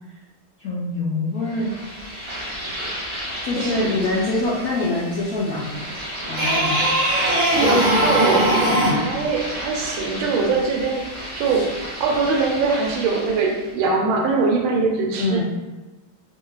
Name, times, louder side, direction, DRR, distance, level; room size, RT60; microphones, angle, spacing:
voice 1, 0.6-1.7 3.4-5.8 6.3-6.8 15.2-15.4, left 2 dB, 75° left, -6 dB, 0.8 m, -24 dB
sound 1, 1.5-13.7, equal, 35° right, 0.4 m, -31 dB
voice 2, 3.6-3.9 7.5-11.0 11.3-11.7 12.0-15.4, right 4 dB, 75° right, 1 dB, 1.4 m, -22 dB
sound 2, 6.3-9.1 11.6-11.7, right 1 dB, 60° right, 1.2 m, -19 dB
3.5 x 2.7 x 3.1 m, 1.1 s
omnidirectional pair, 2.3 m